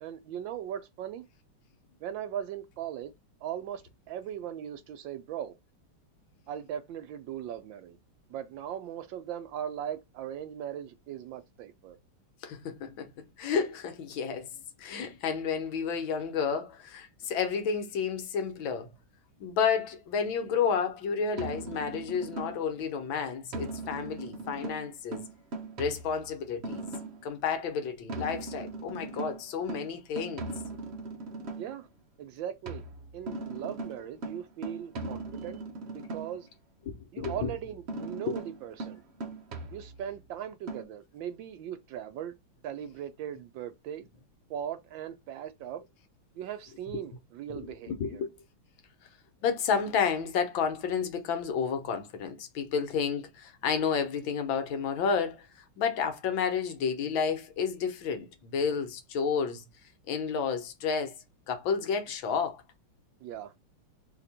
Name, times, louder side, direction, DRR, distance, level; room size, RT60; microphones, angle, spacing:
voice 1, 0.0-1.2 2.0-3.1 3.4-3.8 4.1-5.5 6.5-8.0 8.3-12.0 31.6-31.9 32.2-32.8 33.1-35.6 35.9-36.5 37.1-39.0 39.7-42.3 42.6-44.0 44.5-45.8 46.4-48.2 63.2-63.6, right 10 dB, 75° right, 1.2 m, -39 dB
voice 2, 12.4-13.1 13.4-14.5 14.8-18.9 19.4-25.2 25.8-26.9 27.2-30.5 36.9-37.5 38.3-38.4 46.9-47.0 47.5-48.3 49.4-59.6 60.1-61.1 61.5-62.6, left 6 dB, 70° left, 1.6 m, -31 dB
sound 1, 21.4-22.8 23.5-27.3 28.1-31.8 32.7-36.5 37.2-40.2 40.7-40.8, right 2 dB, 55° right, 0.7 m, -39 dB
4.2 x 2.8 x 4.1 m
omnidirectional pair, 2.3 m